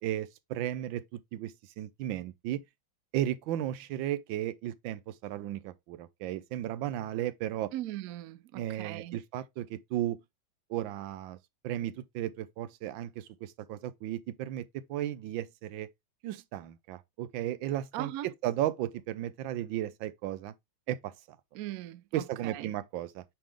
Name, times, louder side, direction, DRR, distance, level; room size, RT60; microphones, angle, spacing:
voice 1, 0.0-2.6 3.1-7.7 8.5-10.2 10.7-11.4 11.6-15.9 16.2-20.5 20.9-21.1 22.1-23.2, right 12 dB, 90° right, 1.4 m, -35 dB
voice 2, 7.7-9.2 17.9-18.3 21.5-22.7, right 14 dB, 75° right, 0.8 m, -39 dB
8.7 x 3.7 x 3.3 m
omnidirectional pair, 2.0 m